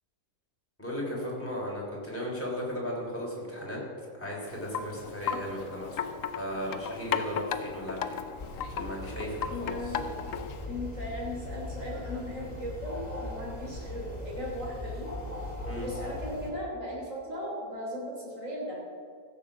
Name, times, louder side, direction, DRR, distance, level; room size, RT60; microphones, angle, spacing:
voice 1, 0.8-3.8 4.1-8.2 8.8-9.7 15.7-15.9, equal, 10° left, -4 dB, 3.5 m, -36 dB
Wind chime, 4.5-10.7, left 7 dB, 65° left, 1.0 m, -36 dB
sound 1, 8.4-16.5, left 2 dB, 30° left, 2.1 m, -39 dB
voice 2, 9.5-10.2 10.7-15.1 15.8-18.8, equal, 60° right, -4 dB, 4.0 m, -37 dB
15.5 x 7.1 x 7.2 m, 2.2 s
omnidirectional pair, 1.6 m